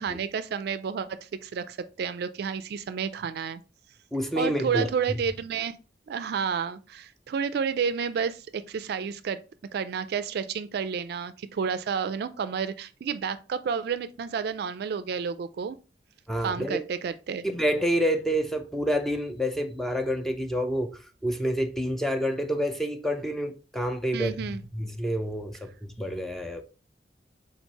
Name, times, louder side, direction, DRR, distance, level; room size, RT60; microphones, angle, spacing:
voice 1, 0.0-3.6 4.4-5.8 6.1-9.4 9.7-15.8 16.4-17.5 24.1-24.6, right 6 dB, 60° right, 0.3 m, -30 dB
voice 2, 4.1-4.9 16.3-16.8 17.4-26.6, equal, ahead, 0.4 m, -28 dB
4.4 x 3.7 x 2.8 m
head